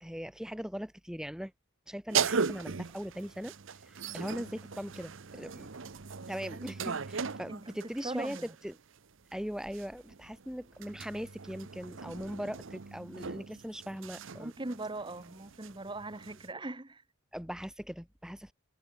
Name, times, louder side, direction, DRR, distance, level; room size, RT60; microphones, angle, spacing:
voice 1, 0.0-1.5 1.9-3.5 3.9-5.7 6.3-8.7 9.3-14.5 17.3-18.5, equal, 5° right, 1.3 m, -40 dB
sound 1, 2.1-8.7 9.6-16.5, right 6 dB, 60° right, 0.8 m, -38 dB
voice 2, 7.5-8.5 14.4-17.0, right 2 dB, 20° right, 1.2 m, -40 dB
head